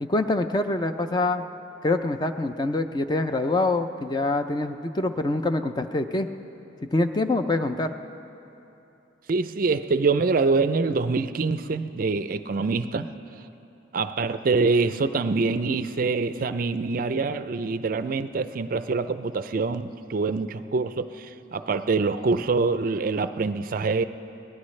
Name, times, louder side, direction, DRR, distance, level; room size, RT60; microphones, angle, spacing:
voice 1, 0.0-1.4 1.8-6.3 6.9-7.9, left 2 dB, 20° left, 7 dB, 0.4 m, -25 dB
voice 2, 9.3-13.1 13.9-24.0, right 4 dB, 45° right, 12 dB, 0.4 m, -25 dB
23.0 x 18.5 x 3.2 m, 2.9 s
head